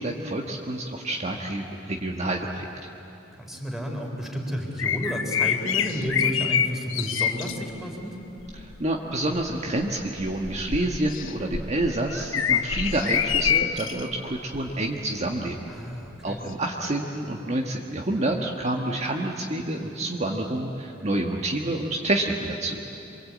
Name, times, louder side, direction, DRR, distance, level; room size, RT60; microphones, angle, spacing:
voice 1, 0.0-2.9 8.5-15.6 16.2-22.8, right 1 dB, 35° right, 0 dB, 1.4 m, -28 dB
voice 2, 3.3-8.2 15.7-16.4, equal, ahead, 0 dB, 4.0 m, -31 dB
sound 1, 4.8-7.5 8.4-8.7 9.4-14.0 14.5-14.7 16.5-16.6, left 8 dB, 85° left, 1.0 m, -26 dB
27.0 x 23.5 x 8.6 m, 2.9 s
head